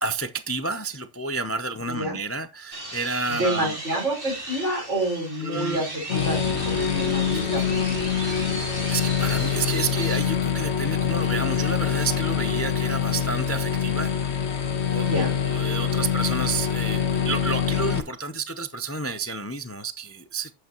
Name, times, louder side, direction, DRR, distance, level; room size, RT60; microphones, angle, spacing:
voice 1, 0.0-3.8 5.4-5.8 7.3-7.5 8.3-14.1 14.9-20.5, right 3 dB, 25° left, 0.3 m, -30 dB
voice 2, 1.9-2.2 3.3-8.0 15.0-15.3, right 1 dB, 80° right, 4.7 m, -28 dB
sound 1, 2.7-10.2, right 1 dB, 50° right, 3.2 m, -36 dB
sound 2, 6.1-18.0, left 8 dB, 65° left, 1.4 m, -25 dB
9.4 x 7.8 x 2.9 m
omnidirectional pair, 1.2 m